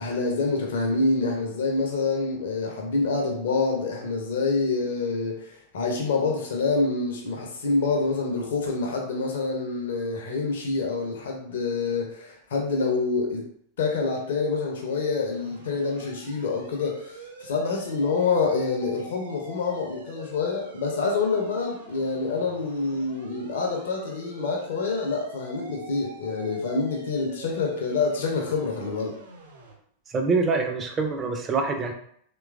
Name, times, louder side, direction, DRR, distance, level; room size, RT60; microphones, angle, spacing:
voice 1, 0.0-13.4 13.8-29.2, left 4 dB, 60° left, 0 dB, 0.6 m, -27 dB
sound 1, 15.3-29.7, right 2 dB, 70° right, 0.7 m, -45 dB
voice 2, 30.1-31.9, right 4 dB, 25° right, 4 dB, 0.4 m, -25 dB
3.0 x 2.3 x 2.3 m, 0.66 s
figure-of-eight pair, 90°, 0 cm